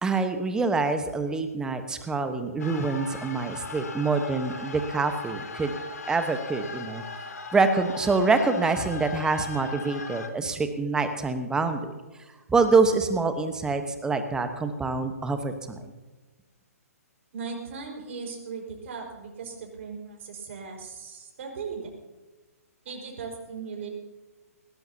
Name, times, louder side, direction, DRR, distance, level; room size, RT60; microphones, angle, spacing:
voice 1, 0.0-5.7 6.1-7.0 7.5-11.9 12.5-15.8, right 4 dB, 10° right, 8 dB, 1.2 m, -25 dB
sound 1, 2.6-10.3, left 4 dB, 70° left, 1.8 m, -39 dB
voice 2, 17.3-21.9 22.8-23.9, right 5 dB, 50° right, 1 dB, 5.1 m, -38 dB
19.0 x 17.0 x 2.9 m, 1.2 s
figure-of-eight pair, 135°, 8 cm